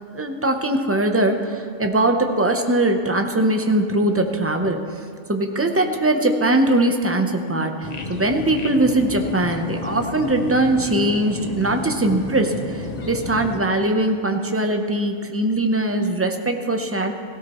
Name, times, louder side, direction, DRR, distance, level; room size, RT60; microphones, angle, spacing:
voice 1, 0.1-4.8 5.3-17.1, right 1 dB, 15° right, 4 dB, 0.7 m, -21 dB
sound 1, 7.8-13.6, left 3 dB, 40° left, 0.8 m, -32 dB
17.5 x 16.0 x 3.1 m, 2.4 s
omnidirectional pair, 1.3 m